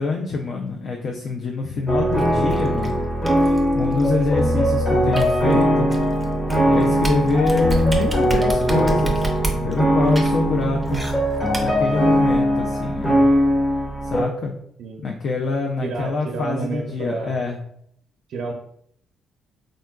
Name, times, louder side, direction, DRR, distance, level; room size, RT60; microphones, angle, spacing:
voice 1, 0.0-3.1 3.7-5.9 6.7-9.3 9.6-11.1 11.6-13.2 14.0-14.5 15.0-17.6, left 4 dB, 60° left, 1 dB, 0.3 m, -25 dB
sound 1, 1.9-14.2, equal, 25° left, 1.1 m, -20 dB
sound 2, 2.2-12.5, right 2 dB, 10° right, 0.5 m, -31 dB
voice 2, 15.8-17.4 18.3-18.5, right 4 dB, 70° right, 1 dB, 0.4 m, -30 dB
3.8 x 2.1 x 2.2 m, 0.70 s
cardioid pair, 90°, 0 cm